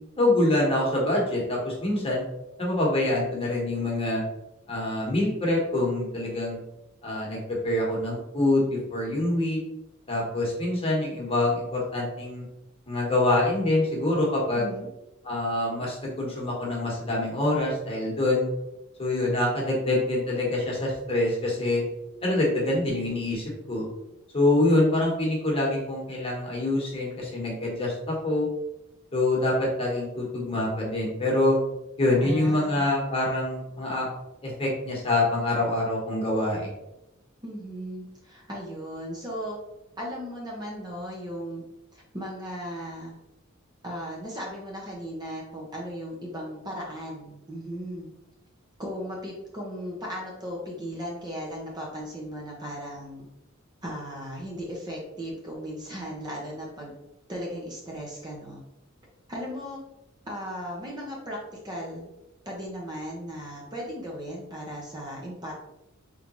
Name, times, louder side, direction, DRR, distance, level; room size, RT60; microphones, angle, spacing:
voice 1, 0.2-2.2 2.6-4.2 4.7-6.6 7.0-9.6 10.1-12.4 12.9-14.7 15.2-18.5 19.0-21.8 22.2-23.8 24.3-28.5 29.1-31.6 32.0-34.1 34.4-36.7, left 2 dB, 30° left, -3 dB, 1.2 m, -25 dB
voice 2, 14.5-14.9 32.2-32.9 37.4-39.6 40.0-41.6 41.9-43.2 43.8-48.1 48.8-53.3 53.8-56.9 57.3-58.6 59.3-59.8 60.3-61.4 61.6-62.1 62.5-65.5, equal, 20° right, -3 dB, 0.8 m, -36 dB
3.8 x 3.3 x 3.0 m, 0.89 s
head